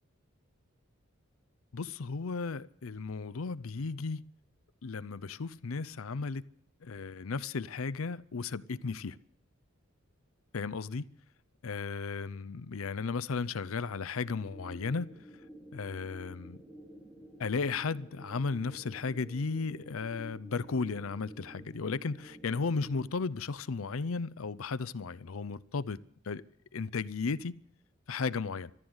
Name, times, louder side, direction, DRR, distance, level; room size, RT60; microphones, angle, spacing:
voice 1, 1.7-4.2 4.8-6.4 6.8-9.2 10.5-11.1 11.6-15.1 15.7-16.6 17.4-26.0 26.2-26.4 26.7-27.6 28.1-28.7, left 4 dB, 90° left, 0.6 m, -35 dB
sound 1, 14.2-23.0, right 1 dB, 5° right, 4.2 m, -51 dB
14.0 x 12.5 x 8.0 m
head